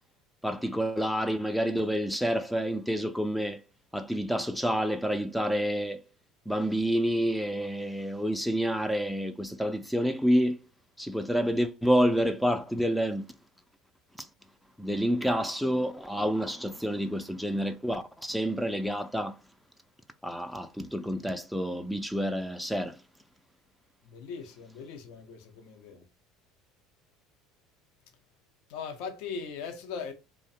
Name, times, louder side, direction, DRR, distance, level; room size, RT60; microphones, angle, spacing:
voice 1, 0.4-3.6 3.9-6.0 6.5-10.6 11.0-13.2 14.2-14.3 14.8-19.4 20.2-23.0, equal, ahead, 0.3 m, -28 dB
voice 2, 24.0-26.0 28.7-30.1, left 6 dB, 70° left, 0.5 m, -39 dB
2.5 x 2.1 x 2.6 m
hypercardioid pair, 80°, 0 cm